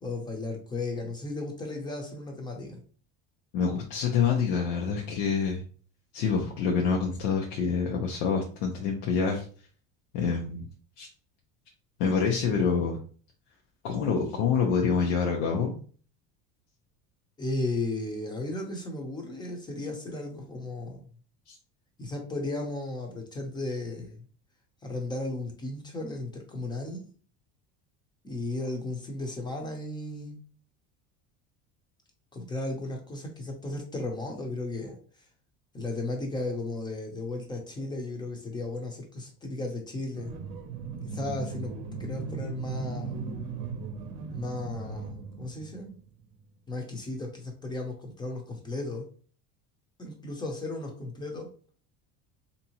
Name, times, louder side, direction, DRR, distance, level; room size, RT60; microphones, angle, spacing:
voice 1, 0.0-2.8 17.4-21.0 22.0-24.2 24.8-27.1 28.2-30.4 32.3-35.0 35.7-40.3 41.0-43.3 44.3-46.0 46.7-49.1 50.0-51.5, left 2 dB, 10° left, 2 dB, 0.6 m, -35 dB
voice 2, 3.5-5.6 6.1-9.4 10.1-10.7 11.0-11.1 12.0-13.0 13.8-15.7 21.5-21.6, left 6 dB, 85° left, 0 dB, 0.8 m, -26 dB
sound 1, 40.2-46.4, right 5 dB, 60° right, 0.7 m, -37 dB
3.5 x 2.8 x 2.9 m, 0.42 s
cardioid pair, 150°, 35 cm